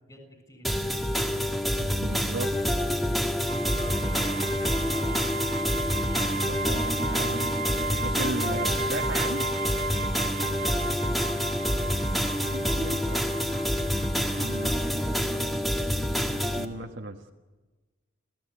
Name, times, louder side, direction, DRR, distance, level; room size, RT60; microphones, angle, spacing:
voice 1, 0.1-0.8 3.5-5.2 8.2-8.5 10.1-10.9 14.6-15.5, equal, 20° left, 5 dB, 7.0 m, -45 dB
sound 1, 0.6-16.6, equal, ahead, 1.8 m, -27 dB
voice 2, 1.5-2.5 6.2-9.5 12.3-14.0 14.4-14.7 16.2-17.3, right 2 dB, 65° right, 1 dB, 1.5 m, -37 dB
sound 2, 3.5-14.9, right 3 dB, 45° right, 0.7 m, -35 dB
29.0 x 16.0 x 8.6 m, 1.2 s
head